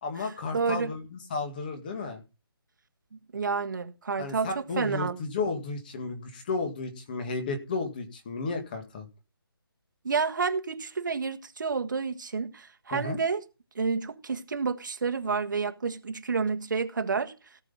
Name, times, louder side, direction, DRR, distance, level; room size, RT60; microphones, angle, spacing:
voice 1, 0.0-2.2 4.2-9.1 12.9-13.2, left 3 dB, 20° left, 1.9 m, -33 dB
voice 2, 0.5-0.9 3.3-5.2 10.0-13.4 13.7-17.3, right 5 dB, 50° right, 1.6 m, -29 dB
17.5 x 6.3 x 5.4 m
hypercardioid pair, 175°, 13 cm